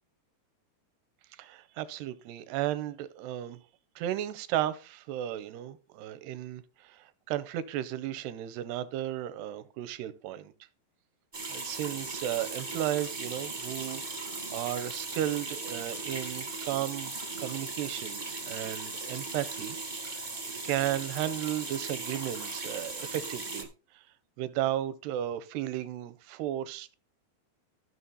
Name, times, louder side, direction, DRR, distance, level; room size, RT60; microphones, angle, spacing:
voice 1, 1.4-3.6 4.0-10.5 11.5-19.8 20.6-23.7 23.9-24.0 24.4-27.0, right 12 dB, 85° right, 2.8 m, -34 dB
sound 1, 11.3-23.6, right 3 dB, 55° right, 0.5 m, -38 dB
14.0 x 6.3 x 4.0 m
omnidirectional pair, 4.8 m